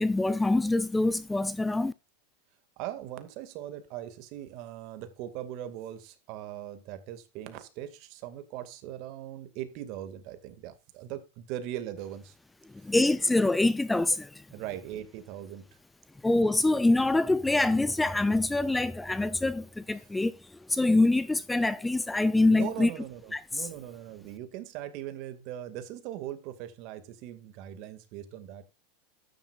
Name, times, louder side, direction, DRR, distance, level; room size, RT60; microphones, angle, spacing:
voice 1, 0.0-1.9 12.8-14.4 16.2-22.9 23.3-23.7, left 2 dB, 5° left, 0.6 m, -25 dB
voice 2, 2.8-12.3 14.5-15.6 22.5-28.6, right 12 dB, 55° right, 2.2 m, -40 dB
13.0 x 10.0 x 2.5 m
supercardioid pair, 120°, 0 cm